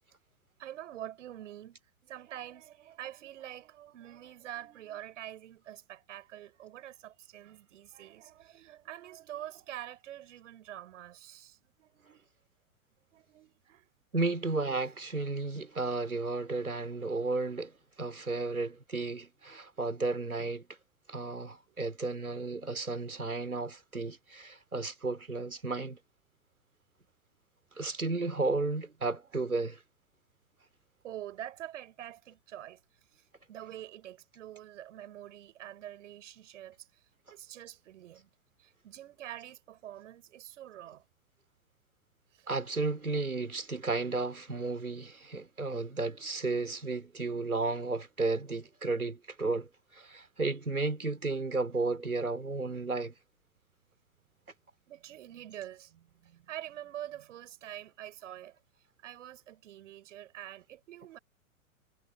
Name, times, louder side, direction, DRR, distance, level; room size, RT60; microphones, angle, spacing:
voice 1, 0.6-12.3 13.1-13.9 27.8-28.0 29.2-29.3 31.0-32.8 33.1-38.3 38.6-41.0 42.3-42.5 54.9-58.6 59.0-61.2, right 12 dB, 60° right, 6.7 m, -46 dB
voice 2, 14.1-20.7 21.1-26.0 27.8-29.8 42.5-49.7 49.9-53.1, right 3 dB, 90° right, 4.8 m, -33 dB
figure-of-eight pair, 105°, 42 cm